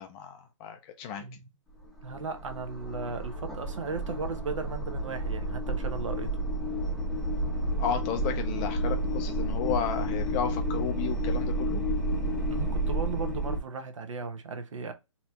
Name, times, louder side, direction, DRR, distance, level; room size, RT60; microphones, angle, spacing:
voice 1, 0.0-1.2 7.8-11.8, left 8 dB, 15° left, 0.3 m, -33 dB
voice 2, 1.2-1.5 2.0-6.4 12.5-14.9, right 4 dB, 75° right, 0.9 m, -36 dB
sound 1, 1.7-13.6, right 1 dB, ahead, 0.7 m, -31 dB
4.1 x 2.9 x 2.3 m
hypercardioid pair, 150°, 16 cm